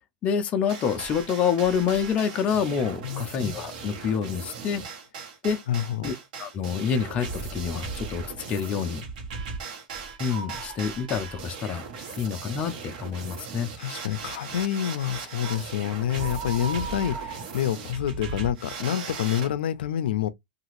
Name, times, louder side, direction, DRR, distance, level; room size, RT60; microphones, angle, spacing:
voice 1, 0.2-4.8 5.4-5.6 6.0-6.1 6.4-9.1 10.2-13.7, left 7 dB, 25° left, 0.4 m, -27 dB
sound 1, 0.7-19.5, right 5 dB, 60° right, 1.0 m, -38 dB
voice 2, 5.7-6.1 12.0-12.2 13.8-20.3, left 10 dB, 85° left, 0.4 m, -28 dB
sound 2, 10.3-10.9 11.4-11.5 15.4-15.7 16.2-18.1, right 5 dB, 40° right, 0.8 m, -38 dB
2.8 x 2.4 x 2.9 m
supercardioid pair, 150°, 5 cm